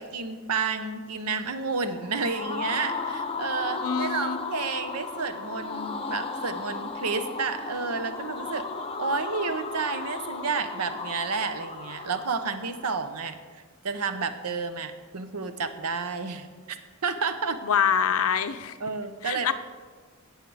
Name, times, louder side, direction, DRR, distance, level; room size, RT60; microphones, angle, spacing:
voice 1, 0.0-8.6 9.0-16.8 17.0-17.6 18.8-19.5, right 4 dB, 90° right, 10 dB, 0.9 m, -31 dB
sound 1, 1.9-12.8, left 4 dB, 25° left, 0.6 m, -35 dB
voice 2, 3.8-4.4 17.6-18.8 19.2-19.5, left 7 dB, 70° left, 11 dB, 0.6 m, -25 dB
17.0 x 6.6 x 4.8 m, 1.5 s
head